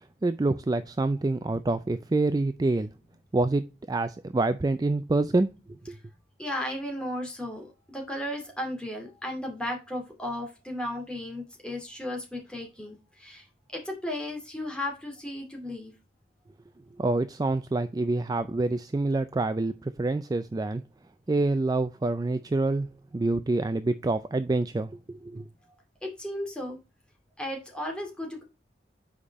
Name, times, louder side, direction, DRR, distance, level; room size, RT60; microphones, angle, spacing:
voice 1, 0.2-2.9 3.3-5.5 5.9-6.0 17.0-20.8 21.3-25.5, right 2 dB, 20° right, 0.3 m, -27 dB
voice 2, 6.4-13.5 13.7-15.9 26.0-26.8 27.4-28.4, left 1 dB, 5° left, 2.5 m, -35 dB
7.2 x 5.0 x 4.1 m
head